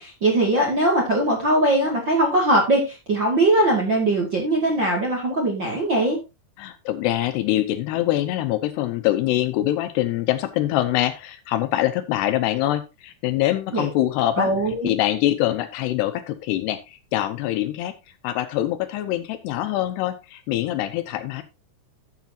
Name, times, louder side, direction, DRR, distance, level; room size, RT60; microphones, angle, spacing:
voice 1, 0.0-6.2 13.7-13.9 14.4-15.0, right 1 dB, 40° right, -1 dB, 1.9 m, -21 dB
voice 2, 6.6-14.5 14.8-17.9 18.2-21.4, left 14 dB, 80° left, 10 dB, 2.7 m, -24 dB
13.5 x 7.3 x 2.8 m, 0.25 s
omnidirectional pair, 5.1 m